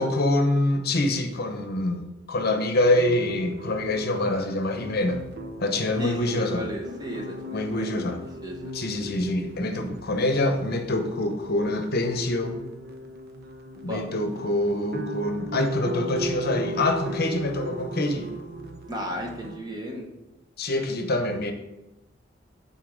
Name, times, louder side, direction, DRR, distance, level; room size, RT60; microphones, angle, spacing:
voice 1, 0.0-5.2 5.6-6.6 7.5-8.2 8.7-12.5 13.8-18.3 20.6-21.5, left 1 dB, 55° left, 6 dB, 0.8 m, -25 dB
sound 1, 2.8-19.6, equal, 55° right, 0.8 m, -37 dB
voice 2, 6.0-7.9 8.4-8.6 13.9-14.0 18.9-20.1, equal, 20° right, 1 dB, 1.1 m, -34 dB
10.5 x 4.2 x 3.8 m, 0.98 s
head